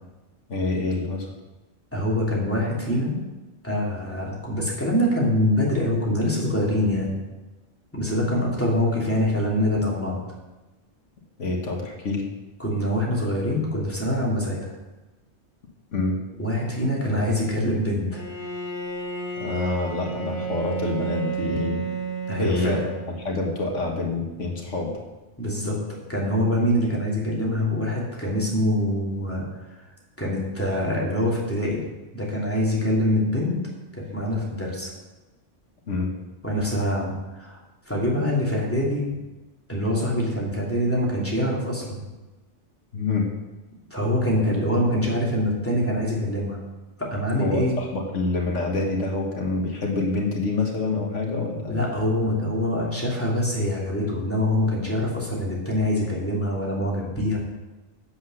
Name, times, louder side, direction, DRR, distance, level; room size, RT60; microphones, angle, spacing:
voice 1, 0.5-1.3 11.4-12.3 15.9-16.2 19.4-21.8 22.3-24.9 35.9-36.1 42.9-43.3 47.4-51.8, left 3 dB, 85° left, 0 dB, 1.9 m, -27 dB
voice 2, 1.9-3.2 3.6-7.2 7.9-10.2 12.6-14.7 16.4-18.2 22.3-22.8 25.4-25.8 26.1-29.4 30.2-31.8 32.1-33.6 33.9-34.9 36.4-37.6 37.9-39.1 39.7-42.0 43.9-46.6 47.0-47.8 51.7-57.4, left 1 dB, 10° left, -5 dB, 2.9 m, -24 dB
Bowed string instrument, 18.1-23.5, right 4 dB, 45° left, 1.5 m, -31 dB
8.4 x 7.8 x 6.5 m, 1.1 s
omnidirectional pair, 1.2 m